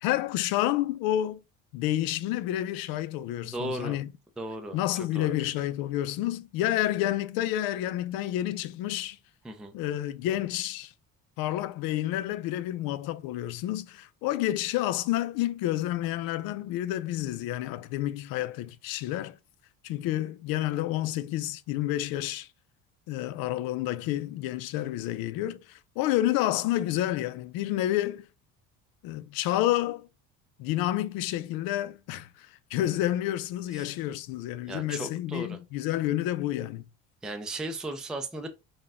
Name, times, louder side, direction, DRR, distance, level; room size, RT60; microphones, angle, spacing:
voice 1, 0.0-1.4 1.7-4.1 4.7-9.2 9.7-10.9 11.4-19.4 19.8-22.5 23.1-28.3 29.0-30.1 30.6-36.8, left 14 dB, 75° left, 0.5 m, -29 dB
voice 2, 3.4-4.0 4.4-4.8 5.1-5.3 9.4-9.7 33.7-33.9 34.7-35.6 37.2-38.5, right 2 dB, ahead, 0.4 m, -36 dB
4.1 x 2.2 x 3.5 m
cardioid pair, 115°, 36 cm